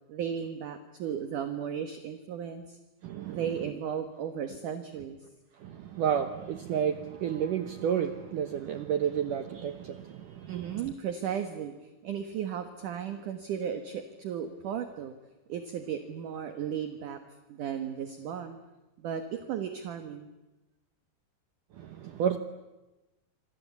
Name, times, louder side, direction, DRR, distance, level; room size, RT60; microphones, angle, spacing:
voice 1, 0.1-2.8 3.3-5.2 10.5-15.1 15.5-17.2 17.5-18.6 19.0-20.3, right 8 dB, 60° right, 2.3 m, -35 dB
voice 2, 3.0-3.5 5.6-10.9 21.7-22.4, right 8 dB, 80° right, 1.8 m, -31 dB
27.0 x 25.0 x 8.4 m
omnidirectional pair, 5.4 m